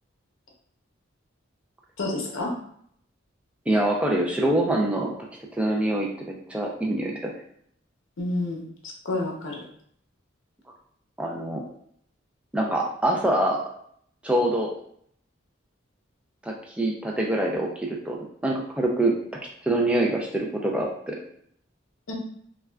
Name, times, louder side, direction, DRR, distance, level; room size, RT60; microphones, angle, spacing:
voice 1, 2.0-2.5 8.2-8.6 9.0-9.6 22.1-22.2, left 2 dB, 75° left, -1 dB, 0.7 m, -28 dB
voice 2, 3.7-7.3 11.2-11.6 12.5-13.7 14.2-14.7 16.4-18.2 18.4-19.1 19.6-21.2, right 1 dB, 5° right, -1 dB, 0.3 m, -25 dB
3.5 x 2.2 x 2.2 m, 0.66 s
head